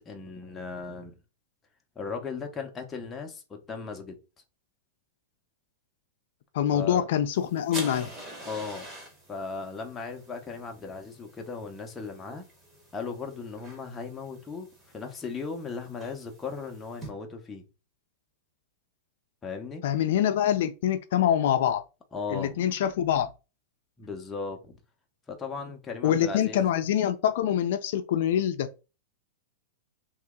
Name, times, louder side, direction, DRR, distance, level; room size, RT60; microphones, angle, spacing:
voice 1, 0.1-1.2 2.0-4.2 6.7-7.1 8.5-8.9 9.3-12.5 12.9-17.6 19.4-19.8 22.1-22.6 24.0-24.8 25.3-26.7 28.3-28.5, left 4 dB, 15° left, 0.7 m, -37 dB
voice 2, 6.5-8.1 19.8-21.8 22.3-23.3 26.0-28.7, left 10 dB, 65° left, 0.4 m, -25 dB
sound 1, 7.3-17.1, right 1 dB, 15° right, 1.2 m, -46 dB
3.0 x 2.8 x 3.6 m
supercardioid pair, 145°, 0 cm